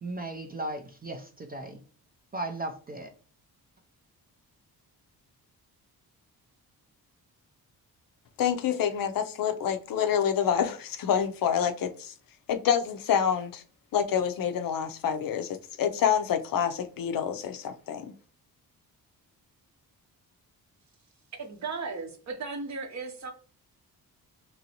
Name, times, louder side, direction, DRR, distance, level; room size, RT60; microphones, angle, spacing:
voice 1, 0.0-1.8 2.3-3.1, right 2 dB, 25° right, 0.4 m, -36 dB
voice 2, 8.4-12.1 12.5-13.6 13.9-18.1, left 8 dB, 65° left, 0.5 m, -27 dB
voice 3, 21.4-23.3, right 4 dB, 45° right, 0.7 m, -36 dB
3.0 x 2.6 x 2.8 m
cardioid pair, 105°, 38 cm